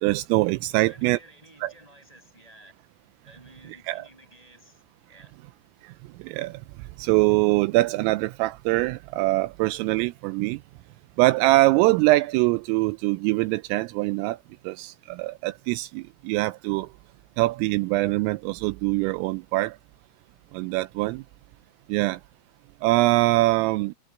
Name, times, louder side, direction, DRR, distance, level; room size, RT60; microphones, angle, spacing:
voice 1, 0.0-1.2 1.6-1.7 3.9-4.0 5.8-5.9 6.2-6.6 7.0-10.6 11.2-14.4 14.6-16.9 17.4-19.8 20.5-21.2 21.9-22.2 22.8-24.0, right 20 dB, 85° right, 3.2 m, -23 dB
voice 2, 0.7-2.9 3.2-5.4 21.8-21.9, right 1 dB, 5° left, 7.0 m, -53 dB
omnidirectional pair, 6.0 m